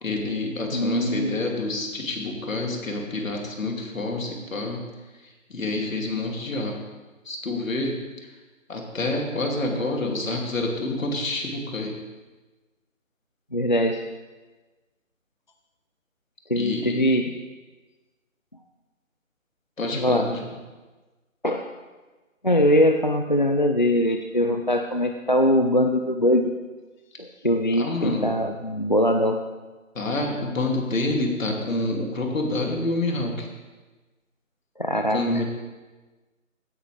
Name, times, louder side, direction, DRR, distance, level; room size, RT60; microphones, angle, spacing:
voice 1, 0.0-4.8 5.2-6.8 7.2-7.9 8.7-11.9 16.5-17.0 19.8-20.4 27.8-28.3 29.9-33.5 35.1-35.4, left 2 dB, 70° left, 1 dB, 2.7 m, -28 dB
voice 2, 0.7-1.4 13.5-14.0 16.5-17.3 19.9-20.3 21.4-21.7 22.4-26.5 27.2-29.4 34.8-35.4, equal, 35° left, 4 dB, 0.4 m, -22 dB
17.0 x 9.2 x 3.4 m, 1.2 s
hypercardioid pair, 170°, 41 cm